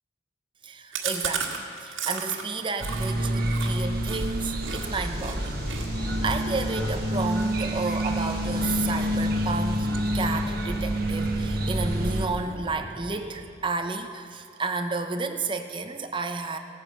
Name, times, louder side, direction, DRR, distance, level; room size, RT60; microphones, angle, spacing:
voice 1, 0.6-5.6 6.2-9.9 10.1-16.6, right 3 dB, 25° right, 6 dB, 0.8 m, -31 dB
Chewing mastication, 0.9-4.8 5.2-5.4 5.7-8.7 9.0-9.4 9.7-10.5 10.8-10.9 11.2-11.3 11.6-12.2, right 7 dB, 85° right, 1.8 m, -35 dB
sound 1, 2.8-12.3, equal, 50° right, 1.3 m, -28 dB
sound 2, 4.8-13.5, equal, 70° left, 4.1 m, -37 dB
16.5 x 9.6 x 7.5 m, 2.3 s
head